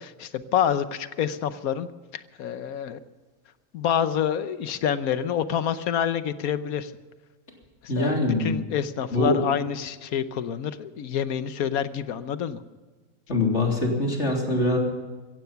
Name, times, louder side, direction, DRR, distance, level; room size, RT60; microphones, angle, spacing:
voice 1, 0.0-3.0 3.7-6.9 7.8-12.6, left 9 dB, 80° left, 13 dB, 1.3 m, -27 dB
voice 2, 7.9-8.5 9.1-9.4 13.3-14.8, left 2 dB, 50° left, 0 dB, 3.7 m, -23 dB
16.5 x 15.5 x 5.8 m, 1.3 s
omnidirectional pair, 1.5 m